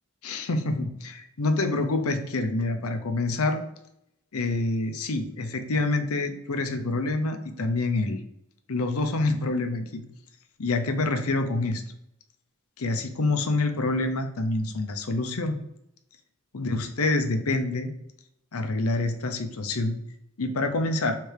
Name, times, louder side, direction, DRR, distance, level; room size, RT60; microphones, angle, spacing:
voice 1, 0.2-3.6 4.3-8.2 8.7-10.0 10.6-11.8 12.8-15.6 16.5-17.9 18.5-20.0 20.4-21.2, left 2 dB, 85° left, 6 dB, 0.7 m, -27 dB
3.3 x 3.2 x 4.7 m, 0.80 s
head